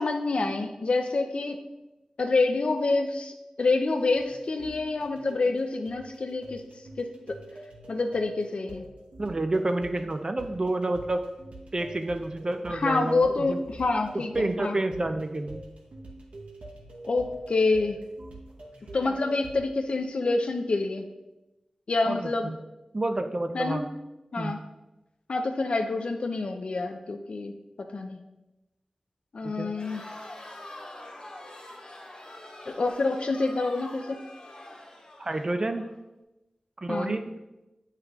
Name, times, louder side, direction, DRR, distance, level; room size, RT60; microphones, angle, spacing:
voice 1, 0.0-1.6 2.2-6.6 7.0-7.4 7.9-8.8 12.7-14.8 17.0-18.0 18.9-21.0 21.9-22.5 23.5-23.8 24.3-24.6 25.3-27.5 27.8-28.2 29.3-30.0 32.7-34.2 36.9-37.1, left 3 dB, 65° left, 5 dB, 0.4 m, -27 dB
sound 1, 3.9-19.6, right 1 dB, 90° right, 0.9 m, -45 dB
voice 2, 9.2-11.2 11.7-13.6 14.3-15.6 22.1-22.6 22.9-23.9 24.4-24.6 29.4-29.7 35.2-35.9 36.8-37.3, right 2 dB, 40° right, 7 dB, 0.4 m, -29 dB
Crowd, 29.7-35.9, left 1 dB, 50° left, 1.5 m, -45 dB
7.7 x 5.7 x 2.3 m, 1.0 s
wide cardioid pair, 65°, 2 cm